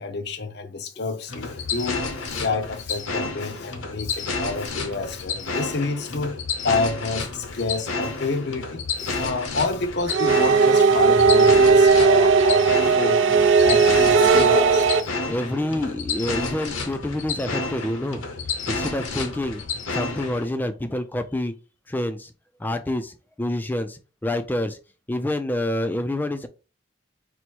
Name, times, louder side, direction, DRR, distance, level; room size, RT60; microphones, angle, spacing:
voice 1, 0.0-6.3 6.6-13.2 13.6-14.9, left 3 dB, 55° left, 0.6 m, -28 dB
sound 1, 1.3-20.5, left 4 dB, 85° left, 0.9 m, -30 dB
sound 2, 10.1-15.0, right 5 dB, 70° right, 0.4 m, -16 dB
voice 2, 15.3-18.2 18.7-19.6 19.9-21.5 21.9-22.3 22.6-24.8 25.1-26.5, left 1 dB, 10° left, 0.3 m, -27 dB
4.5 x 2.1 x 4.3 m
head